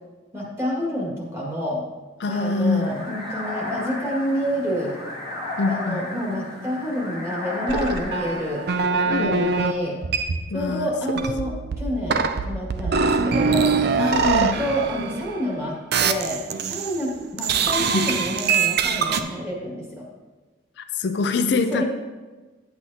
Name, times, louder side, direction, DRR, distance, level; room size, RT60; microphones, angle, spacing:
voice 1, 0.3-1.8 2.3-5.0 5.7-8.6 9.0-10.0 10.5-13.7 14.4-20.1 21.7-21.8, equal, 15° right, -4 dB, 1.9 m, -28 dB
voice 2, 2.2-2.9 5.6-6.0 9.1-9.4 10.5-10.9 14.0-14.6 17.9-18.1 20.8-21.8, left 4 dB, 60° left, 7 dB, 0.4 m, -24 dB
sound 1, 2.3-8.7, left 2 dB, 30° right, 2.0 m, -34 dB
sound 2, 7.7-9.7 10.0-10.7 11.1-15.5 15.9-17.0 17.4-19.2, right 5 dB, 55° right, 0.5 m, -23 dB
10.5 x 8.1 x 2.8 m, 1.2 s
head